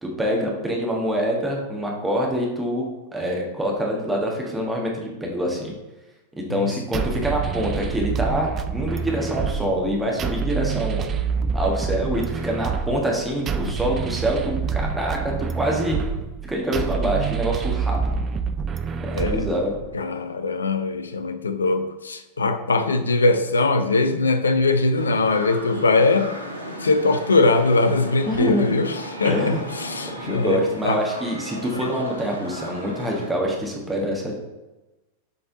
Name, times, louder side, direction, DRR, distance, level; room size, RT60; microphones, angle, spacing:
voice 1, 0.0-5.7 6.4-11.0 11.5-16.0 16.4-18.2 19.0-19.8 28.3-28.7 29.2-29.6 30.2-34.3, equal, 10° right, -1 dB, 1.4 m, -25 dB
sound 1, 6.9-20.0, right 6 dB, 25° right, 0.4 m, -27 dB
voice 2, 19.1-19.5 19.9-26.3 26.8-31.0 31.7-31.8, left 3 dB, 75° left, 9 dB, 0.5 m, -21 dB
sound 2, 24.9-33.3, equal, 90° left, 1.4 m, -35 dB
6.8 x 4.2 x 3.8 m, 1.1 s
figure-of-eight pair, 90°, 0 cm